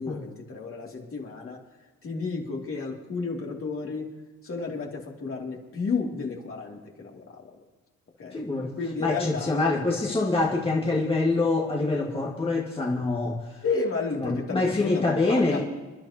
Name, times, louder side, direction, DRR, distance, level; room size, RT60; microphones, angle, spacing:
voice 1, 0.0-1.6 2.0-4.1 4.4-7.6 8.2-8.4 8.8-9.8 13.6-15.6, left 4 dB, 45° left, -1 dB, 2.9 m, -32 dB
voice 2, 8.3-8.7 9.0-13.4 14.5-15.6, left 3 dB, 20° left, -2 dB, 1.9 m, -25 dB
28.0 x 11.0 x 3.0 m, 1.2 s
cardioid pair, 90°, 30 cm